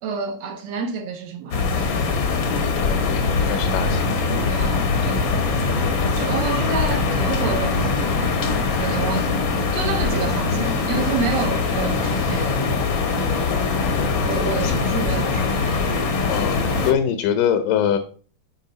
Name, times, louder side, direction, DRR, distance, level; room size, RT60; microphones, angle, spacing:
voice 1, 0.0-1.6 4.5-5.3 6.2-8.5 8.8-12.6 14.0-15.9 16.8-16.9, right 5 dB, 70° right, 1.7 m, -29 dB
sound 1, 1.5-16.9, left 4 dB, 65° left, 1.2 m, -22 dB
voice 2, 2.6-4.1 14.6-14.7 16.3-18.0, left 9 dB, 80° left, 2.3 m, -23 dB
12.0 x 5.2 x 4.0 m
omnidirectional pair, 3.8 m